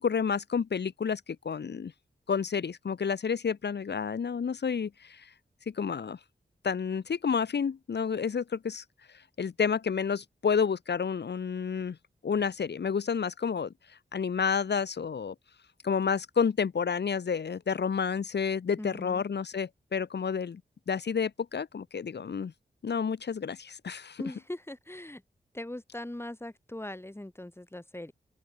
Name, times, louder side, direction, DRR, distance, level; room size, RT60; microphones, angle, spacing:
voice 1, 0.0-1.9 2.3-5.3 5.7-6.2 6.6-12.0 12.2-15.3 15.8-20.6 20.9-22.5 22.8-24.2, left 6 dB, 80° left, 1.4 m, -30 dB
voice 2, 18.8-19.2 24.2-25.2 25.5-28.1, left 1 dB, 15° left, 3.3 m, -40 dB
cardioid pair, 60°, 18 cm